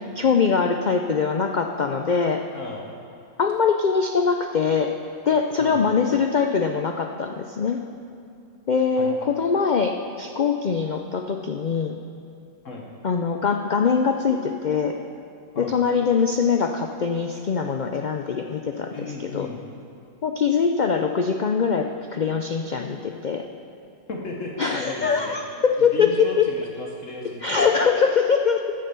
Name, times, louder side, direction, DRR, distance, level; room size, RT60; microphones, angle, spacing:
voice 1, 0.2-2.5 3.4-4.9 5.3-7.8 8.7-12.0 13.0-15.0 15.6-19.0 19.2-19.5 20.2-23.5 24.6-26.5 27.4-28.6, left 5 dB, 75° left, 5 dB, 0.4 m, -22 dB
voice 2, 2.5-2.9 5.6-5.8 9.0-9.3 12.6-12.9 15.5-15.8 18.9-19.6 24.1-27.7, left 3 dB, 60° left, -1 dB, 1.4 m, -35 dB
13.0 x 7.5 x 6.9 m, 2.5 s
omnidirectional pair, 1.5 m